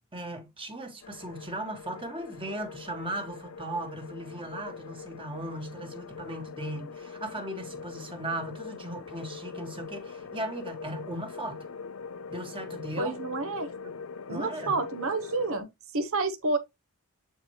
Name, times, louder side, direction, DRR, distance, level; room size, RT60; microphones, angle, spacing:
voice 1, 0.1-11.7 12.3-13.2 13.8-14.0 14.3-14.8, right 1 dB, 25° right, 1.7 m, -37 dB
sound 1, 1.0-15.6, left 5 dB, 65° left, 0.6 m, -42 dB
voice 2, 13.0-13.7 14.3-16.6, right 3 dB, 65° right, 1.1 m, -29 dB
8.7 x 4.4 x 3.0 m
head